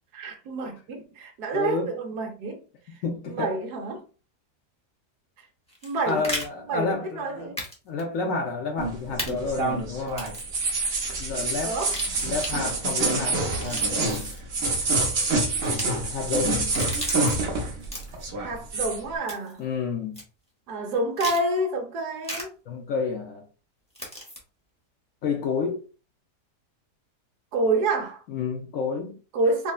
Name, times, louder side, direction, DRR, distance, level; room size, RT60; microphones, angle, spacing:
voice 1, 0.1-2.6 2.9-4.0 5.8-6.3 6.7-7.6 11.6-12.0 18.4-19.6 20.7-22.5 27.5-28.2 29.3-29.7, right 2 dB, 70° right, 1.2 m, -28 dB
voice 2, 1.5-1.9 3.0-3.5 6.1-7.5 7.9-10.2 11.2-11.8 12.2-14.3 15.6-16.7 19.6-20.2 22.7-23.5 25.2-25.8 28.3-29.2, left 4 dB, 70° left, 0.8 m, -30 dB
sound 1, 5.7-6.5 7.6-7.7 8.0-8.1 9.2-9.3 10.1-10.5 11.7-12.5 13.4-14.4 15.6-15.8 16.5-17.4 17.8-18.3 19.3-19.6 20.1-20.2 21.2-21.4 22.2-22.4 23.9-24.4, left 1 dB, 10° left, 0.4 m, -35 dB
sound 2, 8.8-17.9 18.1-19.0, right 3 dB, 55° right, 0.7 m, -27 dB
3.7 x 2.1 x 2.3 m
omnidirectional pair, 1.8 m